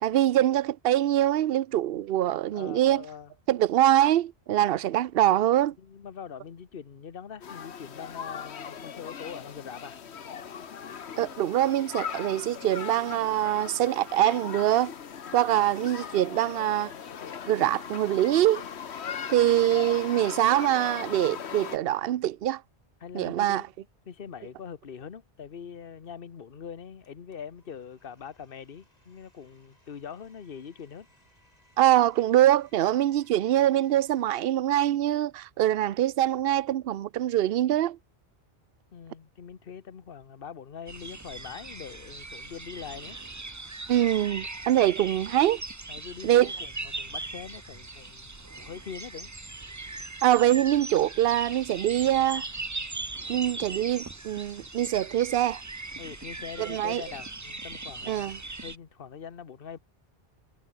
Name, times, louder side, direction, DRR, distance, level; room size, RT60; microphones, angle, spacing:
voice 1, 0.0-3.0 3.5-5.7 11.2-14.9 15.3-16.9 17.5-18.6 19.3-22.6 23.1-23.6 31.8-38.0 43.9-45.6 46.2-46.5 50.2-52.4 53.3-55.6 56.6-57.0 58.1-58.4, right 12 dB, 65° right, 0.8 m, -24 dB
voice 2, 2.5-3.3 5.8-10.0 23.0-23.7 24.1-31.1 38.9-43.2 45.9-49.3 56.0-58.3 58.6-59.8, left 7 dB, 60° left, 1.3 m, -43 dB
sound 1, 7.4-21.8, left 7 dB, 80° left, 1.4 m, -39 dB
Domestic sounds home sounds, 27.0-34.5, left 1 dB, 40° left, 7.4 m, -65 dB
sound 2, 40.9-58.8, right 2 dB, 20° right, 0.8 m, -39 dB
omnidirectional pair, 1.1 m